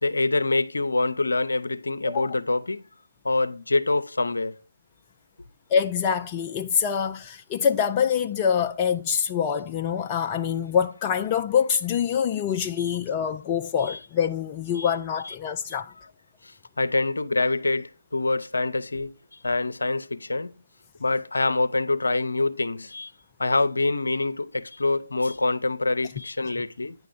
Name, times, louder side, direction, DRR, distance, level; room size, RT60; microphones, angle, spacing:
voice 1, 0.0-2.8 3.2-4.6 12.8-12.9 13.9-14.0 14.8-14.9 15.2-15.3 16.8-19.1 19.4-20.5 21.0-23.1 23.4-26.9, left 2 dB, 65° left, 0.6 m, -25 dB
voice 2, 5.7-15.9, left 7 dB, 20° left, 0.3 m, -25 dB
9.2 x 5.8 x 3.7 m
figure-of-eight pair, 145°, 0 cm